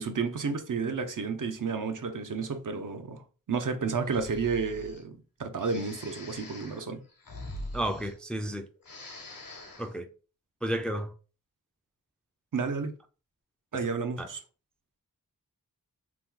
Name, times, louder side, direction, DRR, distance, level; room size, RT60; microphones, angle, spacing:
voice 1, 0.0-7.0 12.5-12.9 13.7-14.4, right 5 dB, 60° right, 0.6 m, -31 dB
Breathing, 4.0-5.0 5.6-8.5 8.8-9.9, left 1 dB, 70° left, 1.0 m, -44 dB
voice 2, 7.7-8.7 9.8-10.1 10.6-11.1 14.2-14.3, right 1 dB, 5° left, 0.4 m, -32 dB
2.9 x 2.3 x 3.6 m
wide cardioid pair, 60°, 35 cm